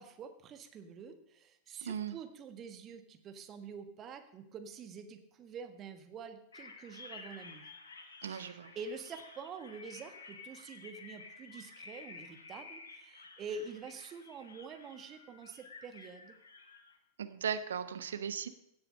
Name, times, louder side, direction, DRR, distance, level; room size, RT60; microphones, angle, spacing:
voice 1, 0.0-7.7 8.2-16.4, right 5 dB, 30° right, 8 dB, 1.4 m, -47 dB
voice 2, 1.8-2.2 8.2-8.7 17.2-18.5, right 7 dB, 65° right, 12 dB, 0.9 m, -37 dB
sound 1, 6.5-17.0, left 4 dB, 70° left, 1.7 m, -52 dB
16.0 x 7.9 x 5.5 m, 0.79 s
figure-of-eight pair, 90°, 0 cm